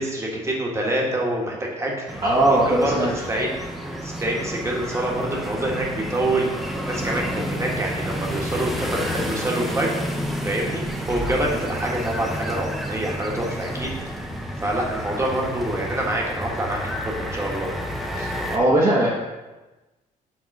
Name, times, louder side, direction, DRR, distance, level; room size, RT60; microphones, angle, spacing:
voice 1, 0.0-2.0 2.4-3.6 4.0-10.0 10.4-13.9 14.6-16.8 17.0-17.7, right 1 dB, 20° right, -2 dB, 1.4 m, -26 dB
sound 1, 2.1-18.6, equal, ahead, 0.7 m, -30 dB
voice 2, 2.2-3.1 18.1-19.1, right 1 dB, 35° right, -5 dB, 1.2 m, -19 dB
6.2 x 3.6 x 5.3 m, 1.1 s
cardioid pair, 115°, 15 cm